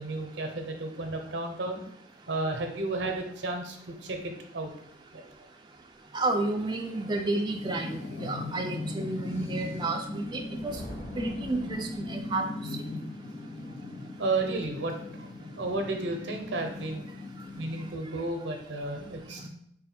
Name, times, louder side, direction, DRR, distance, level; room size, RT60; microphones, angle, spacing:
voice 1, 0.0-1.8 2.3-4.7 5.1-5.2 14.2-15.3 15.5-17.1 17.5-19.5, right 2 dB, 80° right, 4 dB, 0.7 m, -33 dB
voice 2, 6.1-10.7 11.2-12.5, right 2 dB, 25° right, 2 dB, 0.3 m, -31 dB
sound 1, 7.5-17.9, left 2 dB, 85° left, 0.9 m, -39 dB
Thunder, 10.3-12.6, equal, 50° left, 1.2 m, -46 dB
4.0 x 2.3 x 4.2 m, 0.71 s
head